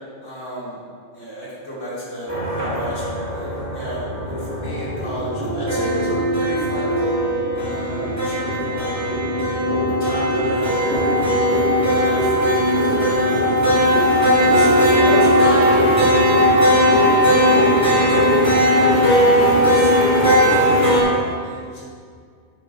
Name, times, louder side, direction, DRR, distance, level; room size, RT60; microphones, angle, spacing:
voice 1, 0.2-0.8 1.1-6.9 7.5-9.1 10.0-13.9 14.4-21.7, equal, 70° left, -8 dB, 3.0 m, -32 dB
sound 1, 2.3-21.0, equal, 10° right, 2.5 m, -18 dB
8.9 x 5.2 x 5.4 m, 2.1 s
omnidirectional pair, 1.4 m